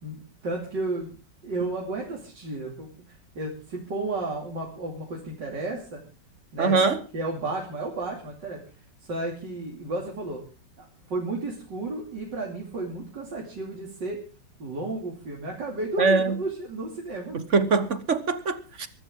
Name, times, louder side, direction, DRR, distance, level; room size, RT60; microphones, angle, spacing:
voice 1, 0.0-1.1 1.4-2.9 3.3-6.0 6.5-6.9 7.1-8.6 9.0-10.4 10.8-14.2 14.6-17.4, right 2 dB, 75° right, 3.4 m, -32 dB
voice 2, 6.6-7.0 16.0-16.3 17.5-18.9, right 4 dB, 45° right, 1.4 m, -22 dB
23.0 x 13.0 x 3.7 m
omnidirectional pair, 1.9 m